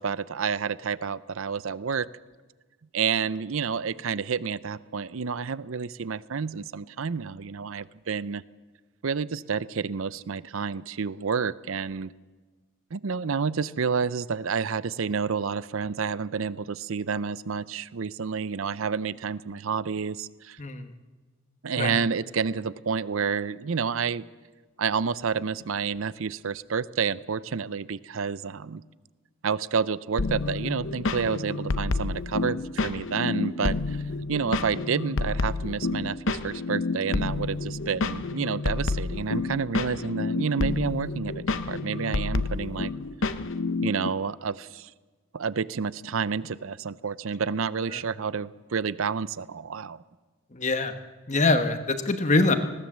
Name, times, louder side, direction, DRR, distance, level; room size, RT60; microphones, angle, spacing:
voice 1, 0.0-2.1 2.9-8.4 9.0-12.1 12.9-20.6 21.6-24.2 24.8-28.8 29.4-34.0 34.3-42.9 43.8-44.9 45.3-50.0, right 6 dB, 65° right, 18 dB, 0.6 m, -29 dB
voice 2, 20.6-20.9 21.8-22.0 47.9-48.0 50.5-50.9 51.3-52.5, left 3 dB, 35° left, 8 dB, 1.2 m, -24 dB
sound 1, 30.2-44.1, left 3 dB, 60° left, 0.8 m, -29 dB
20.0 x 17.5 x 7.4 m, 1.3 s
head